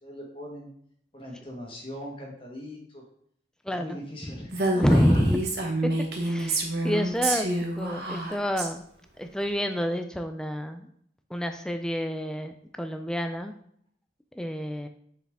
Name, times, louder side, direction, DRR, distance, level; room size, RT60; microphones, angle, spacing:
voice 1, 0.0-0.7 1.1-3.0 3.7-5.2, equal, 30° left, -1 dB, 1.6 m, -40 dB
voice 2, 3.7-4.0 4.8-5.4 5.8-5.9 6.2-8.8 9.2-10.9 11.3-13.6 14.4-14.9, equal, 5° left, 6 dB, 0.3 m, -28 dB
Female speech woman speaking, 4.5-8.7, right 1 dB, 65° right, 1.1 m, -28 dB
6.8 x 4.7 x 3.6 m, 0.67 s
head